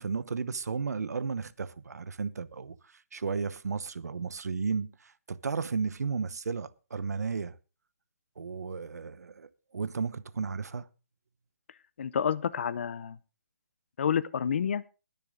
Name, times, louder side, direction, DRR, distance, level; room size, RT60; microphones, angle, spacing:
voice 1, 0.0-2.8 3.1-7.6 8.4-10.9, right 5 dB, 80° right, 1.0 m, -34 dB
voice 2, 12.0-13.2 14.0-14.8, left 7 dB, 45° left, 0.7 m, -29 dB
21.0 x 7.0 x 3.7 m
hypercardioid pair, 170°, 9 cm